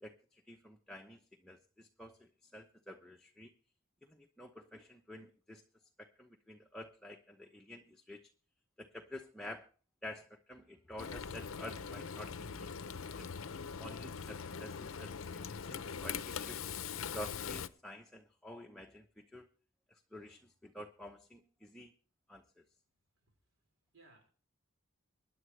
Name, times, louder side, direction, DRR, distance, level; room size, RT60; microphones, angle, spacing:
voice 1, 0.0-3.5 4.0-5.6 6.0-8.3 8.8-9.7 10.0-12.7 13.2-13.3 13.8-16.6 17.1-19.5 19.9-21.9 22.3-22.6, left 1 dB, ahead, 1 dB, 0.8 m, -50 dB
Frying (food), 11.0-17.7, left 6 dB, 75° left, 0.6 m, -42 dB
voice 2, 23.1-24.3, right 2 dB, 70° right, 3 dB, 5.2 m, -65 dB
23.5 x 10.0 x 3.2 m, 0.38 s
head